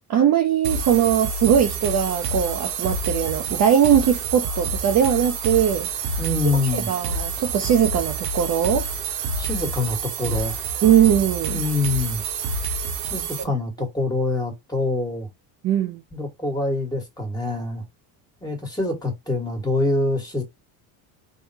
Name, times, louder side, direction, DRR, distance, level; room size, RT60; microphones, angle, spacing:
voice 1, 0.1-5.9 6.7-8.9 10.8-11.6 15.6-16.0, right 9 dB, 40° right, 0.5 m, -20 dB
sound 1, 0.6-13.4, right 4 dB, 90° right, 0.9 m, -28 dB
voice 2, 6.2-6.9 9.4-10.7 11.5-12.2 13.1-15.3 16.1-17.8 18.4-20.4, left 2 dB, 10° left, 1.4 m, -25 dB
3.5 x 2.2 x 2.7 m
supercardioid pair, 100°, 46 cm